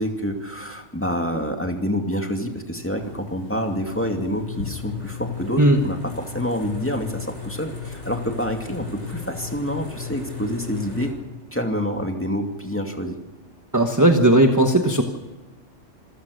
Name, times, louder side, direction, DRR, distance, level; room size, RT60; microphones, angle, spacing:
voice 1, 0.0-11.1 11.5-13.2, equal, 10° left, 3 dB, 2.4 m, -27 dB
sound 1, 3.0-11.1, left 6 dB, 70° left, 6.0 m, -35 dB
voice 2, 13.7-15.0, right 1 dB, 15° right, 4 dB, 1.3 m, -16 dB
27.0 x 15.5 x 6.6 m, 1.2 s
omnidirectional pair, 1.2 m